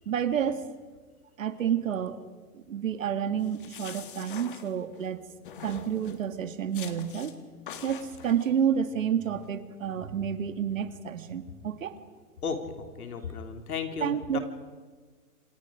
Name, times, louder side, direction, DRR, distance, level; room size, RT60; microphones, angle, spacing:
voice 1, 0.1-0.7 1.4-2.2 2.5-5.2 5.6-7.4 7.8-12.0 14.0-14.4, right 8 dB, 55° right, 9 dB, 2.0 m, -29 dB
sound 1, 3.4-5.1 5.5-6.3 6.7-7.3 7.7-8.5, left 8 dB, 35° left, 1.8 m, -44 dB
voice 2, 12.4-14.4, left 5 dB, 65° left, 5 dB, 3.1 m, -34 dB
27.5 x 27.0 x 5.0 m, 1.5 s
hypercardioid pair, 180°, 47 cm